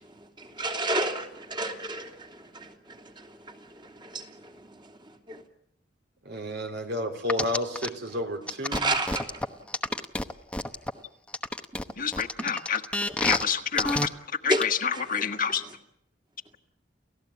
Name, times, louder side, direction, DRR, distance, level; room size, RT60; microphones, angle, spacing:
voice 1, 0.4-2.1 2.5-2.7 4.0-4.3 5.3-5.4 8.7-9.4 14.5-14.6 14.9-15.0, right 1 dB, 25° right, 3 dB, 3.0 m, -29 dB
voice 2, 6.3-9.0, left 1 dB, 65° right, 5 dB, 3.5 m, -31 dB
sound 1, 7.3-7.9 8.5-10.9 11.3-13.4 13.8-14.1 14.5-14.6, left 1 dB, 5° left, 1.0 m, -28 dB
voice 3, 12.0-12.8 13.2-14.1 14.4-15.6, left 7 dB, 50° left, 6 dB, 1.5 m, -28 dB
29.5 x 15.5 x 8.5 m, 0.75 s
head